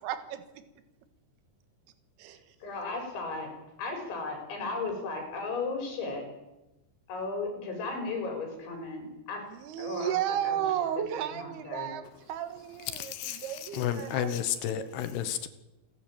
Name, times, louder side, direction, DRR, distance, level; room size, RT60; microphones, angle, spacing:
voice 1, 0.0-0.4 2.2-2.6 9.5-14.4 14.8-14.9, right 10 dB, 70° right, 10 dB, 3.3 m, -33 dB
voice 2, 2.3-3.5 3.8-6.3 7.1-9.5 9.8-10.6 11.3-11.9, left 3 dB, 90° left, 3 dB, 7.4 m, -35 dB
voice 3, 12.9-15.5, left 10 dB, 70° left, 11 dB, 3.1 m, -32 dB
28.5 x 11.0 x 8.9 m, 0.97 s
omnidirectional pair, 5.2 m